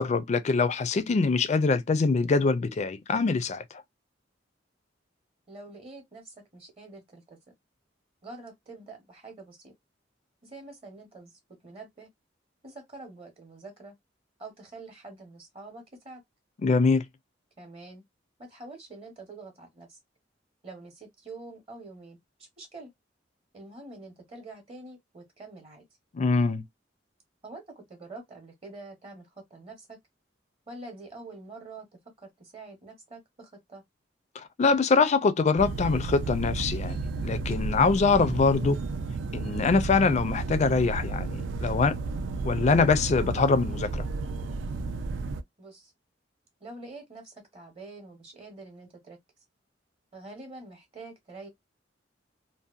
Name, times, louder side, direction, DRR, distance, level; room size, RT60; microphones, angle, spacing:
voice 1, 0.0-3.6 16.6-17.1 26.1-26.6 34.4-38.8 39.3-42.0 42.4-44.1, left 4 dB, 40° left, 0.4 m, -24 dB
voice 2, 5.5-7.4 8.2-9.7 10.4-11.3 11.6-12.1 12.6-13.9 14.4-16.2 17.6-18.0 18.4-20.0 20.6-22.9 23.5-25.8 27.4-30.0 30.7-31.9 32.2-33.8 45.6-45.9 46.6-49.2 50.1-51.5, right 2 dB, 35° right, 0.8 m, -46 dB
sound 1, 35.6-45.4, right 3 dB, 85° right, 0.4 m, -32 dB
2.7 x 2.1 x 2.3 m
head